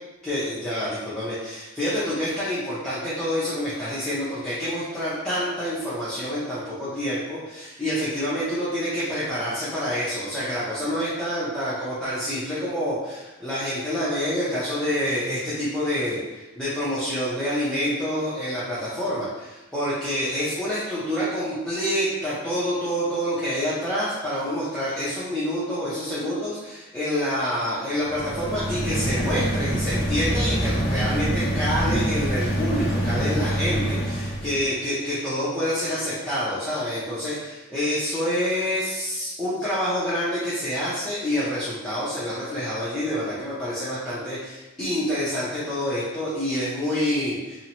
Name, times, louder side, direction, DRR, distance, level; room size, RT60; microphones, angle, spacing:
voice 1, 0.2-47.7, equal, 5° left, -12 dB, 0.5 m, -27 dB
sound 1, 28.0-34.7, right 1 dB, 50° left, 0.5 m, -25 dB
2.7 x 2.0 x 2.7 m, 1.1 s
head